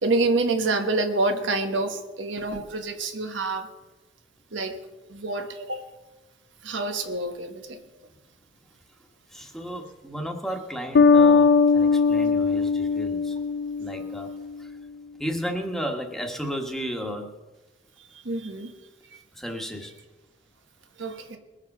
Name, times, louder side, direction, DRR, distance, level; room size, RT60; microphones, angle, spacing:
voice 1, 0.0-3.7 4.5-4.8 5.1-5.9 6.6-7.8 18.2-18.7 21.0-21.4, right 2 dB, 80° right, 6 dB, 1.3 m, -27 dB
voice 2, 9.3-13.4 13.8-14.7 15.2-17.3 19.3-19.9, equal, ahead, 2 dB, 1.4 m, -33 dB
Bass guitar, 10.9-14.5, left 5 dB, 55° left, 0.4 m, -20 dB
21.5 x 7.3 x 5.4 m, 1.1 s
head